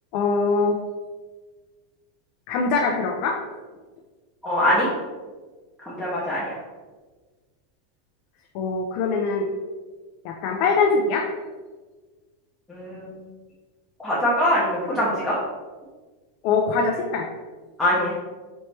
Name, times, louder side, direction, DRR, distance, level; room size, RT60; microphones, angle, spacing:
voice 1, 0.1-0.8 2.5-3.4 8.5-9.5 10.2-11.2 16.4-17.3, left 4 dB, 40° left, 1 dB, 0.4 m, -22 dB
voice 2, 4.4-4.9 5.8-6.4 12.7-13.2 14.0-15.3 17.8-18.2, left 1 dB, 5° left, -9 dB, 0.7 m, -23 dB
4.2 x 3.1 x 3.2 m, 1.4 s
supercardioid pair, 180°, 0 cm